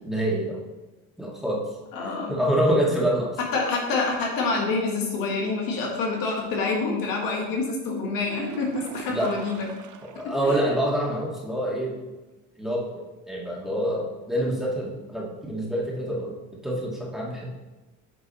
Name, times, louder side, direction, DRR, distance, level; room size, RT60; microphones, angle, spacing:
voice 1, 0.0-0.6 1.2-1.7 2.3-3.4 9.1-9.4 10.1-12.0 12.6-12.9 13.3-16.4 16.6-17.5, right 1 dB, ahead, -4 dB, 1.9 m, -26 dB
voice 2, 1.9-2.3 3.4-9.7 10.2-10.8, left 3 dB, 75° left, -1 dB, 1.7 m, -27 dB
sound 1, 8.2-10.4 10.8-10.9 11.3-11.4 15.2-15.3, right 7 dB, 60° right, 0.7 m, -41 dB
8.6 x 4.0 x 4.2 m, 1.1 s
cardioid pair, 95°, 34 cm